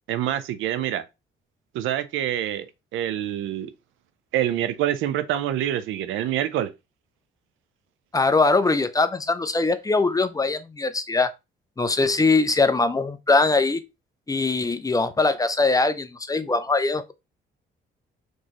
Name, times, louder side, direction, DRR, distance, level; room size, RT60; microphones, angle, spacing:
voice 1, 0.1-1.0 1.7-3.7 4.3-6.7, right 11 dB, 85° right, 0.5 m, -26 dB
voice 2, 8.1-11.3 11.8-13.8 14.3-17.1, left 3 dB, 20° left, 0.5 m, -22 dB
4.3 x 3.1 x 2.9 m
cardioid pair, 90°, 20 cm